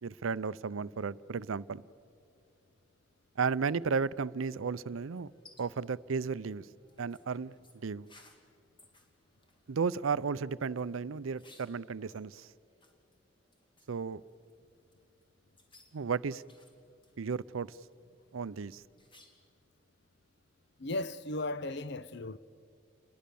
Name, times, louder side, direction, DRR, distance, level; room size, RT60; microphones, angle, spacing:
voice 1, 0.0-1.8 3.4-5.3 5.6-6.7 7.0-8.1 9.7-12.5 13.9-14.2 15.9-16.4 17.2-17.8 18.3-18.8, right 5 dB, 80° right, 0.5 m, -34 dB
sound 1, 4.4-19.6, left 2 dB, 25° left, 2.3 m, -65 dB
voice 2, 20.8-22.4, left 2 dB, 55° left, 0.7 m, -36 dB
30.0 x 22.0 x 7.0 m
head